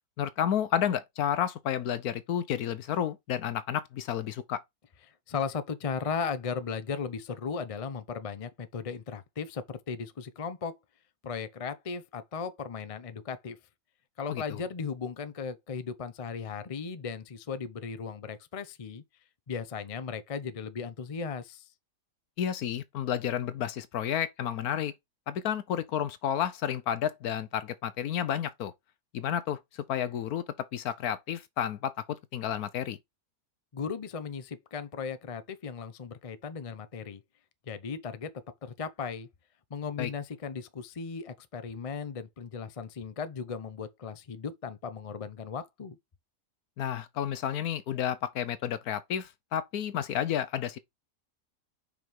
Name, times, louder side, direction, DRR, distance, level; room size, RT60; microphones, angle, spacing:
voice 1, 0.2-4.6 14.3-14.6 22.4-24.9 25.3-28.7 29.1-30.4 30.7-33.0 40.0-40.1 46.8-50.8, left 9 dB, 65° left, 1.2 m, -31 dB
voice 2, 5.1-10.7 11.2-13.6 14.2-19.0 19.5-21.7 33.7-37.2 37.7-38.3 38.6-39.3 39.7-46.0, left 5 dB, 40° left, 0.4 m, -36 dB
5.4 x 5.1 x 4.6 m
omnidirectional pair, 1.8 m